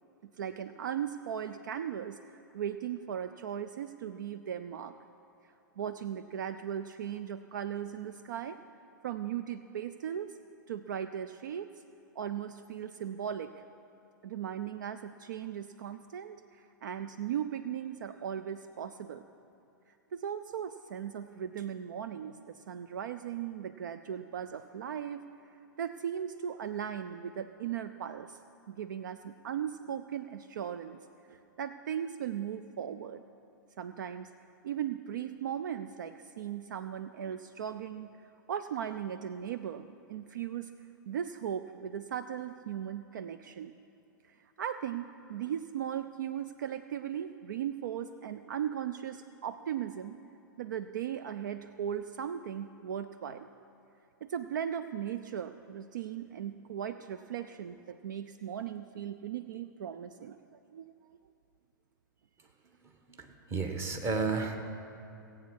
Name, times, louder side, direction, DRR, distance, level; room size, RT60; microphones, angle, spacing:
voice 1, 0.2-4.9 5.8-8.6 9.0-10.4 10.7-11.7 12.2-13.5 14.2-19.2 20.1-25.3 25.8-28.4 28.7-31.0 31.3-33.2 33.8-34.3 34.6-38.1 38.5-40.7 41.1-43.7 44.6-50.2 50.6-53.5 54.2-60.4 60.7-60.9, right 9 dB, 60° right, 11 dB, 0.4 m, -37 dB
voice 2, 63.1-64.6, right 4 dB, 25° right, 4 dB, 1.3 m, -32 dB
17.5 x 8.4 x 6.3 m, 2.8 s
figure-of-eight pair, 105°, 11 cm